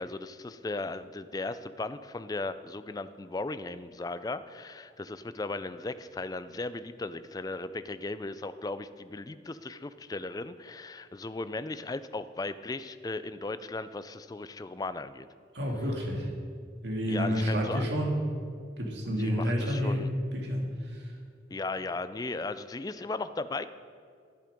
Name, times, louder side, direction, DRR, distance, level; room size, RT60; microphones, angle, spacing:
voice 1, 0.0-15.3 17.1-17.8 19.2-20.1 21.5-23.7, left 3 dB, 20° left, 13 dB, 0.3 m, -36 dB
voice 2, 15.5-16.3 16.8-18.2 18.8-21.1, equal, 65° right, -1 dB, 2.2 m, -29 dB
10.5 x 10.5 x 5.2 m, 2.2 s
head